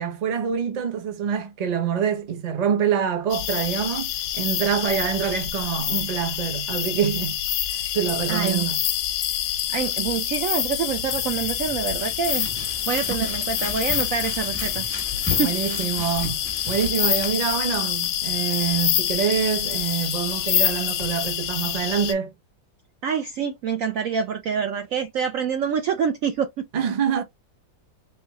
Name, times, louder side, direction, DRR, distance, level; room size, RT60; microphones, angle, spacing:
voice 1, 0.0-7.4 7.7-8.8 15.4-16.4 16.7-22.3 26.7-27.2, right 8 dB, 50° right, 0.4 m, -25 dB
sound 1, 3.3-22.1, left 10 dB, 70° left, 0.9 m, -26 dB
voice 2, 8.3-8.7 9.7-12.5 12.9-14.8 15.4-15.6 23.0-26.5, right 7 dB, 90° right, 0.7 m, -26 dB
sound 2, 10.9-17.3, left 1 dB, 10° right, 0.7 m, -37 dB
3.3 x 3.1 x 2.8 m
omnidirectional pair, 2.1 m